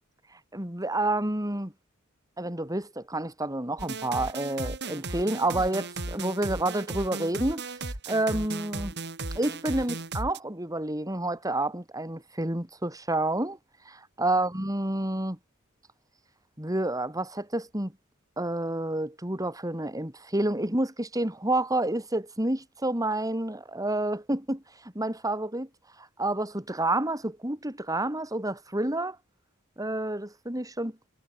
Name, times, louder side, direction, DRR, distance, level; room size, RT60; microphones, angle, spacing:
voice 1, 0.5-1.7 2.4-7.6 8.1-8.9 9.4-13.6 13.9-15.4 16.6-17.9 18.4-25.7 26.2-29.2 29.8-31.1, right 1 dB, 15° right, 3.9 m, -29 dB
sound 1, 3.8-10.4, right 3 dB, 55° right, 3.8 m, -36 dB
head